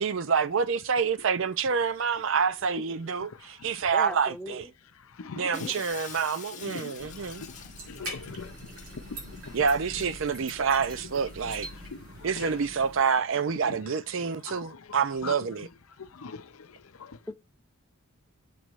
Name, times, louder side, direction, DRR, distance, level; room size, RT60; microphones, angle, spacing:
voice 1, 0.0-4.7 5.3-7.4 9.5-11.7 12.2-15.7, right 6 dB, 65° right, 0.5 m, -27 dB
voice 2, 3.9-4.7 5.4-5.7 17.3-17.4, left 1 dB, 5° left, 0.7 m, -38 dB
voice 3, 5.2-5.8 6.6-7.5 7.9-9.6 11.9-12.5 13.7-13.8 14.5-15.0 15.2-15.3 16.0-17.2, left 5 dB, 85° left, 0.6 m, -42 dB
Shatter, 5.5-9.0, left 8 dB, 35° left, 0.8 m, -46 dB
sound 1, 7.0-13.0, equal, 85° right, 5.0 m, -43 dB
7.7 x 3.1 x 6.2 m
head